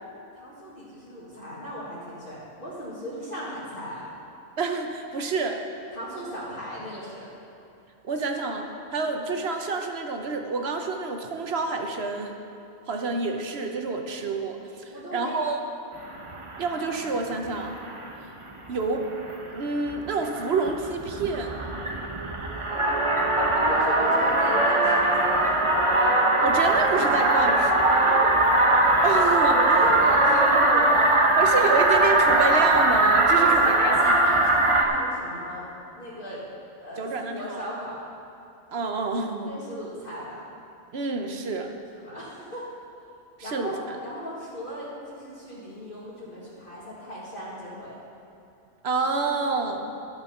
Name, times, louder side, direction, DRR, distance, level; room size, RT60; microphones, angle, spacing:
voice 1, 0.4-4.1 5.9-7.3 14.9-15.4 23.7-25.6 28.0-28.3 29.5-31.1 33.4-35.7 35.9-36.4 36.8-38.0 39.4-40.5 41.9-42.6 43.4-47.9, equal, 45° left, -10 dB, 2.2 m, -36 dB
voice 2, 4.6-5.6 8.0-12.3 12.9-15.6 16.6-17.8 18.7-19.1 19.5-21.6 26.4-28.1 29.0-29.9 31.4-34.1 37.0-37.7 38.7-39.5 40.9-41.7 43.4-44.0 48.8-49.9, right 4 dB, 60° right, 4 dB, 1.1 m, -28 dB
sound 1, 16.1-17.1 17.3-18.1 18.7-18.8 19.1-19.4 19.7-34.9, right 2 dB, 30° right, 0.9 m, -21 dB
12.5 x 6.7 x 5.7 m, 2.9 s
omnidirectional pair, 1.2 m